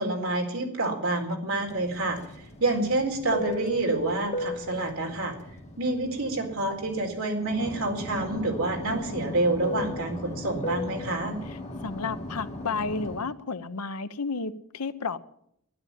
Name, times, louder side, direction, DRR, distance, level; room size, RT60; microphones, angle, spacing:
voice 1, 0.0-2.2 2.6-5.4 5.8-11.4, right 2 dB, 70° right, 2 dB, 4.2 m, -28 dB
Fixed-wing aircraft airplane, 1.7-7.1 7.4-13.3, left 1 dB, 30° left, 2.5 m, -36 dB
voice 2, 11.5-15.2, left 4 dB, 90° left, 12 dB, 0.9 m, -32 dB
12.5 x 11.0 x 9.8 m, 0.75 s
head